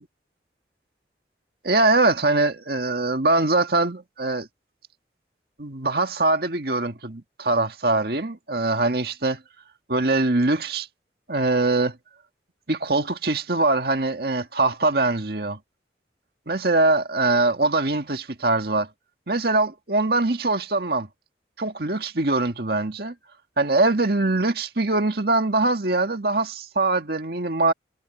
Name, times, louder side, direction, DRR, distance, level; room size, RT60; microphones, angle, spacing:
voice 1, 1.6-4.5 5.6-9.4 9.9-10.9 11.3-12.0 12.7-15.6 16.5-18.9 19.3-21.1 21.6-23.1 23.6-27.7, right 2 dB, 55° right, 1.8 m, -22 dB
head